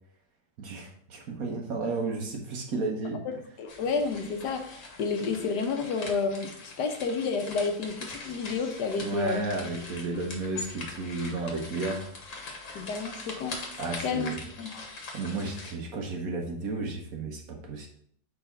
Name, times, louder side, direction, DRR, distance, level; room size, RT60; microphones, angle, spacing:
voice 1, 0.6-3.2 9.0-12.0 13.8-14.4 15.1-17.9, right 3 dB, 55° right, 1 dB, 1.3 m, -33 dB
voice 2, 3.6-9.4 12.7-13.6 14.0-14.9, left 4 dB, 70° left, 5 dB, 1.3 m, -30 dB
sound 1, 3.7-15.7, left 3 dB, 50° left, 1.4 m, -42 dB
4.8 x 4.0 x 5.6 m, 0.65 s
omnidirectional pair, 1.9 m